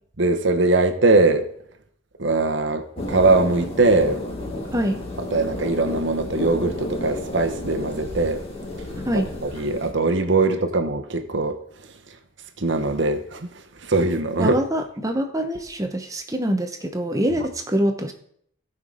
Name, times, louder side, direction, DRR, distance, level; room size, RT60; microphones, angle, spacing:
voice 1, 0.2-1.5 2.2-4.2 5.3-8.4 9.1-11.6 12.6-13.5 13.8-14.6, right 3 dB, 60° right, 5 dB, 1.0 m, -21 dB
sound 1, 3.0-9.9, left 1 dB, 30° left, 1.8 m, -32 dB
voice 2, 14.4-18.1, equal, 15° right, 6 dB, 0.9 m, -24 dB
17.0 x 5.8 x 4.0 m, 0.65 s
head